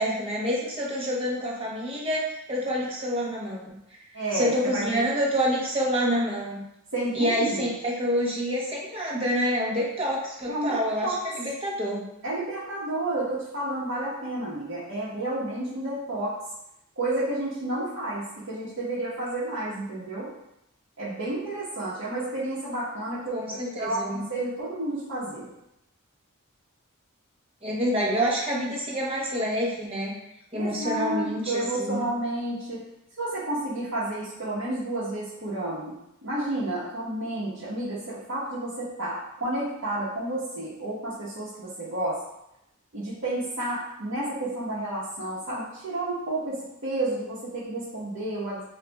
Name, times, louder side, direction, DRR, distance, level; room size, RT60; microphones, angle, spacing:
voice 1, 0.0-3.8 4.3-6.6 7.1-12.1 23.3-24.3 27.6-30.2 30.5-32.0, equal, 25° right, -3 dB, 0.9 m, -27 dB
voice 2, 4.1-5.0 6.9-7.7 10.5-11.2 12.2-16.3 17.0-20.3 21.0-23.4 23.8-25.5 30.5-32.8 33.2-35.9 36.2-42.2 42.9-48.6, right 1 dB, 60° right, -11 dB, 1.1 m, -31 dB
6.9 x 2.5 x 2.3 m, 0.83 s
head